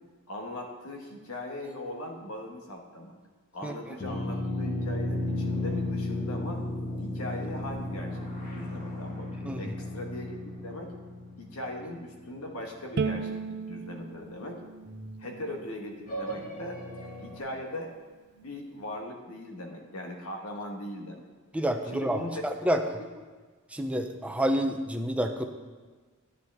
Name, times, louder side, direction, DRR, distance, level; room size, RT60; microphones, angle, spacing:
voice 1, 0.3-3.2 3.5-6.6 7.0-10.4 10.6-10.9 11.4-14.6 15.2-16.8 17.2-17.9 18.3-21.3 21.8-22.4 22.7-22.8, left 1 dB, 90° left, 1 dB, 1.6 m, -39 dB
sound 1, 4.0-12.7 16.1-17.4, left 1 dB, 40° left, 1.7 m, -34 dB
Bowed string instrument, 13.0-16.2, right 5 dB, 50° right, 0.4 m, -36 dB
voice 2, 21.5-22.8 23.7-25.5, equal, 5° right, 5 dB, 0.6 m, -29 dB
10.5 x 9.6 x 3.6 m, 1.4 s
head